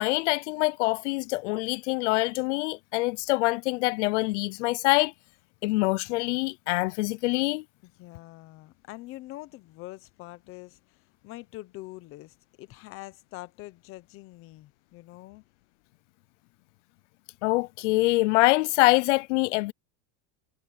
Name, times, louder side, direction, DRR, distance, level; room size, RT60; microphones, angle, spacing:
voice 1, 0.0-5.1 5.6-7.6 17.4-19.7, left 22 dB, 85° left, 0.5 m, -25 dB
voice 2, 7.8-11.0 11.2-15.4, left 18 dB, 40° left, 1.0 m, -44 dB
supercardioid pair, 165°, 35 cm